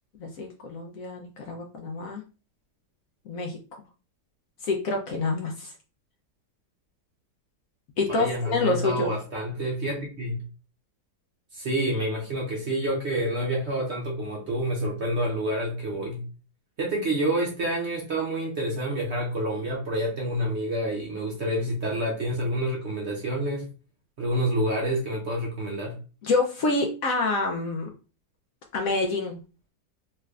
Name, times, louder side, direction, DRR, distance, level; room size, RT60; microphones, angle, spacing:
voice 1, 0.2-2.2 3.3-3.6 4.6-5.7 8.0-9.1 26.2-27.9 28.7-29.4, left 3 dB, 65° left, 2 dB, 0.9 m, -27 dB
voice 2, 8.1-10.4 11.5-16.2 16.8-23.6 24.2-26.0, right 1 dB, 55° right, -2 dB, 0.8 m, -28 dB
3.3 x 3.3 x 2.3 m, 0.34 s
omnidirectional pair, 1.8 m